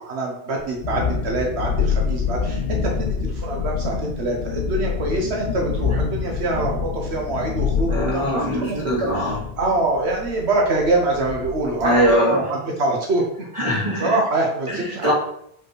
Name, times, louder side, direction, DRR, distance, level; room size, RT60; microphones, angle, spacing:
voice 1, 0.0-8.8 9.1-13.2 14.0-15.1, right 2 dB, 80° right, 0 dB, 1.3 m, -24 dB
Thunderstorm, 0.6-12.2, left 6 dB, 55° left, 0.7 m, -27 dB
voice 2, 7.8-9.4 11.8-12.7 13.5-14.2 14.7-15.1, equal, 30° right, -6 dB, 2.4 m, -22 dB
4.9 x 4.2 x 4.7 m, 0.71 s
omnidirectional pair, 1.1 m